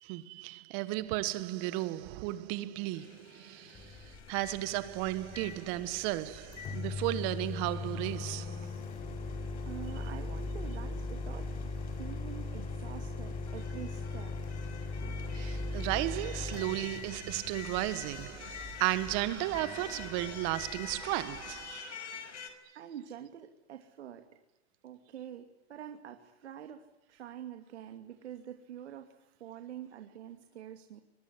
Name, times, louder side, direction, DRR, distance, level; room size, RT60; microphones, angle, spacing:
voice 1, 0.0-8.7 15.3-22.1, right 17 dB, 35° right, 1.6 m, -34 dB
sound 1, 2.9-22.5, left 7 dB, 85° left, 5.7 m, -50 dB
Microwave oven, 3.7-21.7, left 3 dB, 20° left, 3.5 m, -40 dB
voice 2, 9.6-11.6 12.0-14.4 22.7-24.3 24.8-31.0, right 10 dB, 75° right, 2.7 m, -46 dB
25.5 x 22.5 x 9.8 m
hypercardioid pair, 145°, 34 cm